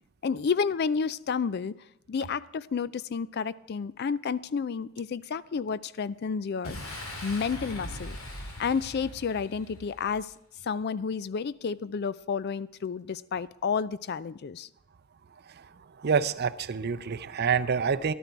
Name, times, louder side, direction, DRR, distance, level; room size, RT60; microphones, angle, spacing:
voice 1, 0.2-1.7 2.1-6.8 7.2-8.2 8.6-10.3 10.6-14.7, left 5 dB, 50° left, 18 dB, 0.4 m, -30 dB
Boom, 6.6-10.3, left 1 dB, 75° left, 2.8 m, -40 dB
voice 2, 15.5-18.1, right 6 dB, 50° right, 12 dB, 0.5 m, -28 dB
13.0 x 12.0 x 4.6 m, 0.78 s
head